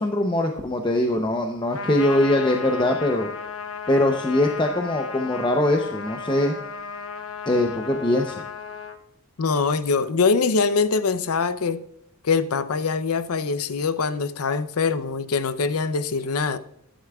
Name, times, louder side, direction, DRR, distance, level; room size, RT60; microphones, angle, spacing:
voice 1, 0.0-3.3 3.9-6.5 7.5-8.4, left 1 dB, 20° left, 0.7 m, -22 dB
Trumpet, 1.7-9.0, left 5 dB, 70° left, 1.0 m, -34 dB
voice 2, 9.4-11.8 12.2-16.6, left 4 dB, 90° left, 0.6 m, -23 dB
12.5 x 11.0 x 2.4 m
head